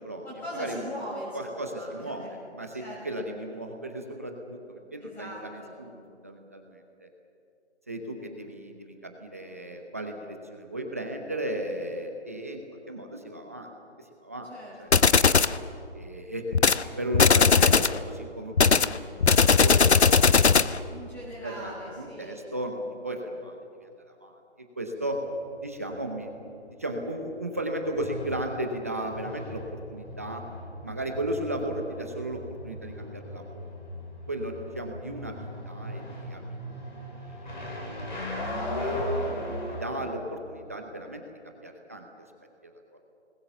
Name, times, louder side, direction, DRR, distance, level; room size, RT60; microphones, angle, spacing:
voice 1, 0.2-2.3 2.8-3.3 5.0-5.7 14.4-15.2 20.9-22.4, equal, 5° left, -7 dB, 6.5 m, -40 dB
voice 2, 1.3-2.2 2.6-7.1 7.9-13.7 14.2-14.5 14.8-14.9 15.9-16.6 17.0-20.3 20.6-20.7 21.4-24.4 24.8-25.2 25.6-29.6 29.9-30.4 30.8-33.7 34.3-36.4 36.7-36.8 37.3-37.9 38.7-42.0, right 1 dB, 15° right, 3 dB, 0.8 m, -35 dB
sound 1, 14.9-15.6 16.5-16.8 17.1-18.0 18.6-20.8, left 5 dB, 70° left, 1.0 m, -19 dB
sound 2, 25.0-40.1, left 1 dB, 45° left, 7.9 m, -37 dB
28.5 x 20.5 x 6.9 m, 2.5 s
figure-of-eight pair, 165°, 34 cm